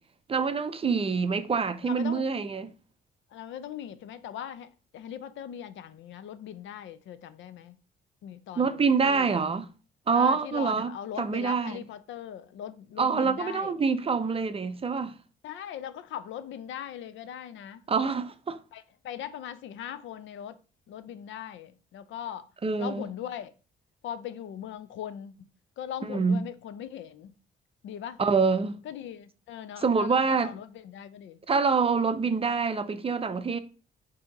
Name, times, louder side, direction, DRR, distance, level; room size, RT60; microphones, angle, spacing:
voice 1, 0.3-2.7 8.6-9.7 10.1-10.9 11.2-11.8 13.0-15.2 17.9-18.6 22.6-23.1 26.0-26.4 28.2-28.8 29.8-30.6 31.5-33.6, right 5 dB, 30° right, 0.5 m, -26 dB
voice 2, 0.8-1.1 1.8-2.3 3.3-7.8 8.2-9.3 10.1-13.7 15.4-17.8 18.7-20.6 20.9-22.5 22.8-23.5 24.0-25.5 25.8-27.3 27.8-28.2 28.8-31.4, left 10 dB, 75° left, 0.5 m, -40 dB
5.0 x 2.8 x 3.7 m
cardioid pair, 90°, 20 cm